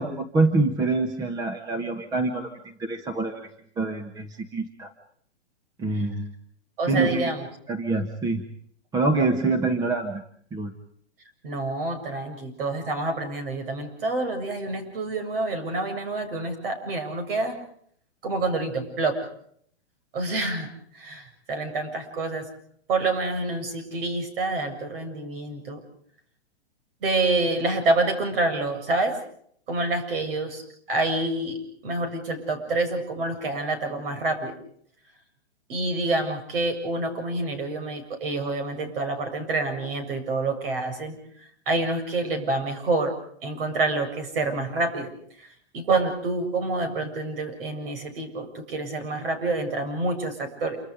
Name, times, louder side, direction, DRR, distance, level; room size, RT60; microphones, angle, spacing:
voice 1, 0.0-2.5 2.8-3.5 3.8-4.9 5.8-6.3 6.9-7.3 7.7-8.4 8.9-10.2 10.5-10.7, right 3 dB, 10° right, 6 dB, 1.4 m, -25 dB
voice 2, 6.8-7.5 11.4-17.6 18.2-19.2 20.1-20.7 20.9-22.5 22.9-25.8 27.0-29.2 29.7-31.6 31.8-34.5 35.7-41.2 41.7-43.1 43.4-45.1 45.4-45.5 45.7-50.8, right 2 dB, 55° right, 7 dB, 7.5 m, -27 dB
27.5 x 25.5 x 5.1 m, 0.64 s
hypercardioid pair, 160°, 34 cm